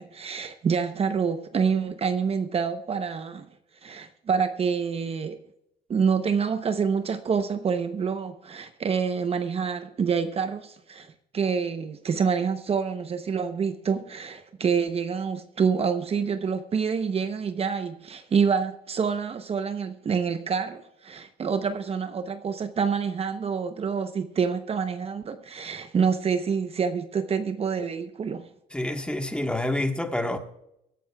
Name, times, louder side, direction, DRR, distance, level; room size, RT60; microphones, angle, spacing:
voice 1, 0.0-3.4 3.8-5.4 5.9-28.5, right 6 dB, 35° right, 0.8 m, -27 dB
voice 2, 28.7-30.4, left 1 dB, 5° left, 1.4 m, -27 dB
23.5 x 11.5 x 2.3 m
cardioid pair, 110°, 17 cm